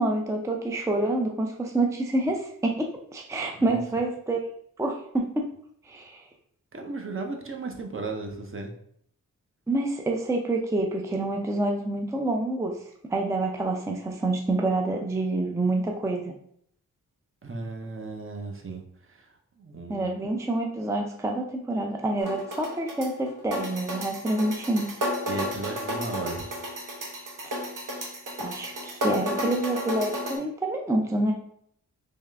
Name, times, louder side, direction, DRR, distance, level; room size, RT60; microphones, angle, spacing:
voice 1, 0.0-4.4 4.8-5.5 5.8-6.2 9.7-12.8 13.1-16.3 19.9-24.9 28.4-31.3, right 2 dB, 10° right, 2 dB, 0.4 m, -27 dB
voice 2, 6.7-8.7 17.4-20.3 25.3-26.4, right 3 dB, 40° right, 3 dB, 0.7 m, -36 dB
sound 1, 22.2-30.4, equal, 75° right, 1.1 m, -32 dB
3.6 x 3.2 x 3.4 m, 0.67 s
wide cardioid pair, 95°, 32 cm